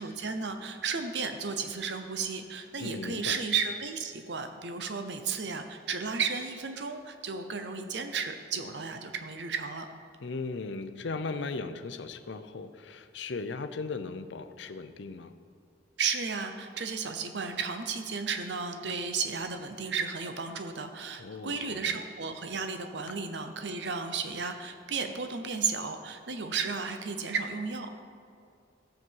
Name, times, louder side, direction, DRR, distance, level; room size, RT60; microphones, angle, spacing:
voice 1, 0.0-9.9 16.0-28.0, right 5 dB, 65° right, 7 dB, 0.8 m, -33 dB
voice 2, 2.8-3.4 10.2-15.3 21.2-22.0, left 3 dB, 70° left, 10 dB, 0.6 m, -37 dB
14.5 x 7.4 x 4.7 m, 2.4 s
head